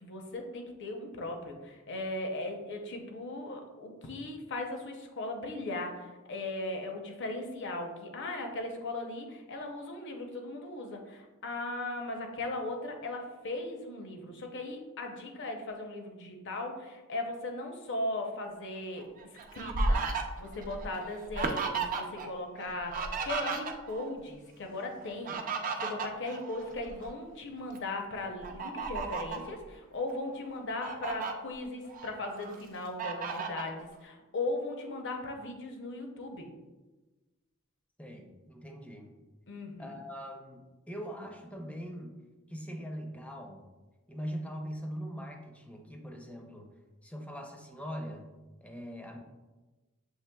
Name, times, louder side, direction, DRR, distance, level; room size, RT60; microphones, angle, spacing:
voice 1, 0.0-19.1 19.5-36.5 39.5-40.0, left 2 dB, 60° left, 3 dB, 0.7 m, -38 dB
Fowl, 19.0-22.3 22.6-24.1 25.0-27.1 27.6-27.8 28.4-29.5 30.1-30.2 30.6-31.3 31.9-32.6 33.0-33.7, right 3 dB, 40° right, 0.5 m, -34 dB
voice 2, 38.0-39.1 39.8-42.2 42.5-43.6 44.1-46.7 47.0-48.3 48.6-49.2, equal, 5° left, 2 dB, 0.5 m, -41 dB
7.2 x 3.3 x 2.2 m, 1.2 s
head